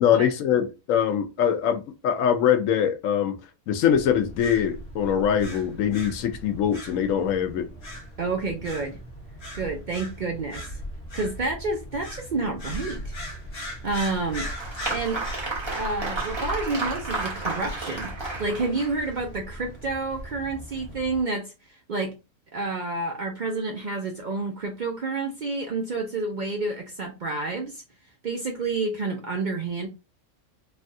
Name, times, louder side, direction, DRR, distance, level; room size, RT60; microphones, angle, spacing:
voice 1, 0.0-3.4 3.7-7.7, left 8 dB, 85° left, 1.0 m, -23 dB
sound 1, 3.9-21.2, equal, 55° left, 1.3 m, -39 dB
voice 2, 8.2-9.0 9.5-10.8 11.1-13.2 13.8-14.5 14.9-15.2 15.8-22.2 22.5-27.8 28.2-29.9, right 3 dB, 55° right, 0.5 m, -29 dB
Applause, 13.9-19.2, right 3 dB, 25° right, 0.9 m, -32 dB
3.3 x 2.3 x 2.5 m
omnidirectional pair, 1.3 m